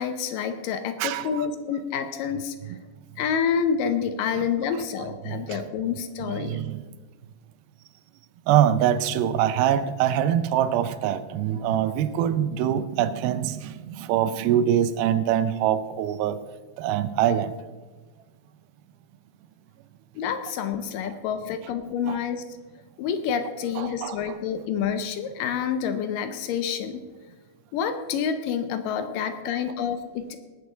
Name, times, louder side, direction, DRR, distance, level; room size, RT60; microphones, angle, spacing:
voice 1, 0.0-2.6 3.2-6.6 20.2-22.4 23.0-27.0 27.7-30.4, left 7 dB, 75° left, 2.2 m, -28 dB
voice 2, 1.0-1.5 5.5-5.6 6.3-6.8 8.5-16.4 16.8-17.5 22.1-22.2 23.8-24.4, right 10 dB, 80° right, 2.5 m, -24 dB
19.0 x 6.7 x 5.7 m
omnidirectional pair, 4.4 m